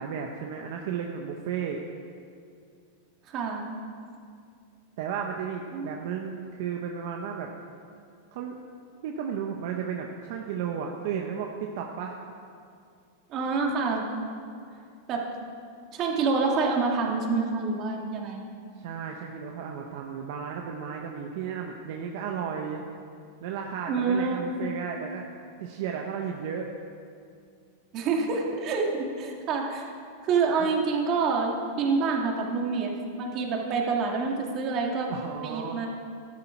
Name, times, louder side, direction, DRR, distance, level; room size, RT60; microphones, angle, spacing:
voice 1, 0.0-1.8 5.0-7.5 8.3-8.6 9.0-12.2 18.8-22.8 23.4-25.3 25.6-26.7 30.6-30.7 35.1-35.9, right 7 dB, 60° right, 2 dB, 1.0 m, -34 dB
voice 2, 3.3-3.7 5.7-5.9 13.3-14.0 15.1-15.3 15.9-18.4 23.9-24.5 27.9-29.9 30.2-32.9 33.2-35.1 35.4-35.9, right 4 dB, 35° right, 0 dB, 2.1 m, -27 dB
13.5 x 11.5 x 4.5 m, 2.4 s
supercardioid pair, 150°, 0 cm